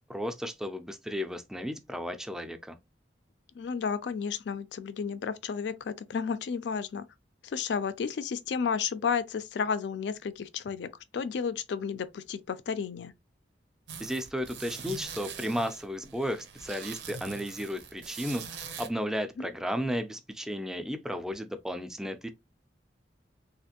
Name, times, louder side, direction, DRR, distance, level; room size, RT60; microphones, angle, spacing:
voice 1, 0.1-2.8 14.0-22.3, equal, 5° right, 0.3 m, -34 dB
voice 2, 3.6-7.1 7.4-13.1 19.4-19.5, left 6 dB, 70° left, 0.3 m, -32 dB
sound 1, 13.9-18.9, right 6 dB, 75° right, 0.6 m, -43 dB
3.3 x 2.4 x 2.8 m
head